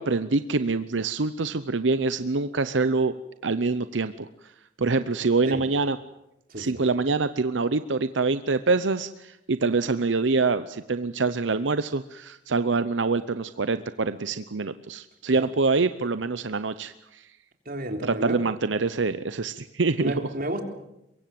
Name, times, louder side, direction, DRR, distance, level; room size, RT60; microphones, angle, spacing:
voice 1, 0.0-3.2 3.4-4.3 4.8-6.0 6.6-17.3 18.0-20.1, right 3 dB, 90° right, 12 dB, 0.8 m, -25 dB
voice 2, 17.7-18.4 20.0-20.6, right 1 dB, 50° right, 4 dB, 3.6 m, -31 dB
23.5 x 23.0 x 7.8 m, 0.87 s
head